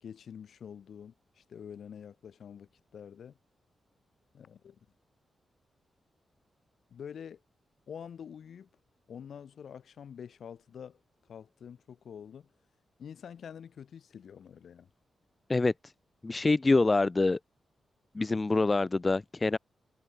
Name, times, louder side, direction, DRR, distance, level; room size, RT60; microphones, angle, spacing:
voice 1, 0.0-3.4 4.3-4.8 6.9-7.4 7.9-8.7 9.1-11.0 11.3-12.5 13.0-14.9, left 8 dB, 65° left, 1.0 m, -46 dB
voice 2, 16.2-17.4 18.1-19.6, left 3 dB, 20° left, 0.3 m, -25 dB
wide cardioid pair, 155°, 0 cm